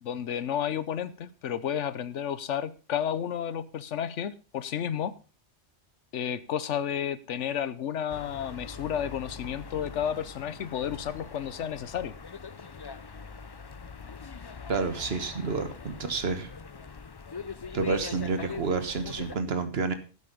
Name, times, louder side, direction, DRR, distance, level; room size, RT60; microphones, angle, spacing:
voice 1, 0.0-5.1 6.1-12.1, left 9 dB, 85° left, 16 dB, 1.2 m, -32 dB
sound 1, 8.1-19.4, left 5 dB, 35° left, 0.4 m, -42 dB
voice 2, 14.7-16.5 17.7-19.9, right 4 dB, 60° right, 9 dB, 1.6 m, -29 dB
12.0 x 8.4 x 5.3 m, 0.35 s
omnidirectional pair, 1.2 m